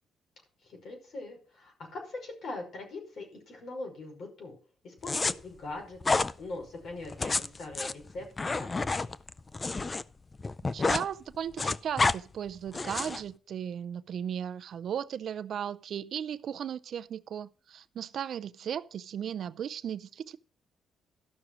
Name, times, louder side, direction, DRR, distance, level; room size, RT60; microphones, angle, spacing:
voice 1, 0.6-4.5 4.8-9.1, left 2 dB, 60° left, 5.4 m, -42 dB
sound 1, 5.0-5.3 6.0-6.3 7.0-10.0 10.3-11.1 11.3-12.2 12.7-13.2, left 3 dB, 25° left, 0.5 m, -29 dB
voice 2, 10.7-20.4, right 9 dB, 65° right, 0.6 m, -36 dB
13.0 x 6.2 x 6.1 m
cardioid pair, 90°, 0 cm